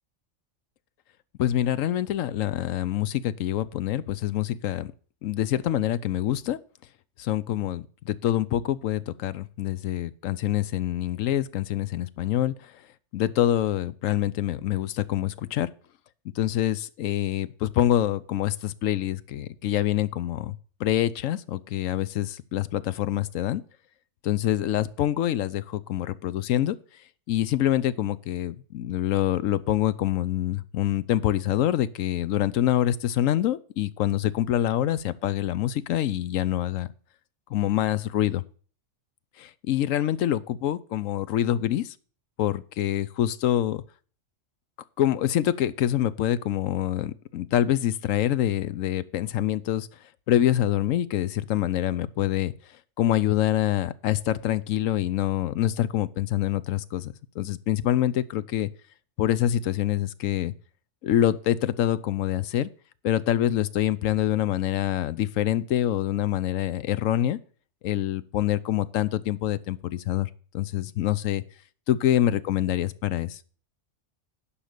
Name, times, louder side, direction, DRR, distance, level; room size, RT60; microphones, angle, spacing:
voice 1, 1.4-4.9 5.2-6.6 7.2-12.7 13.1-15.7 16.4-23.6 24.2-26.8 27.3-36.9 37.5-38.4 39.4-41.9 42.4-43.8 45.0-49.9 50.3-52.5 53.0-58.7 59.2-60.5 61.0-62.7 63.0-67.4 67.8-71.4 71.9-73.4, left 12 dB, 85° left, 1.0 m, -26 dB
10.0 x 5.6 x 6.6 m
omnidirectional pair, 1.3 m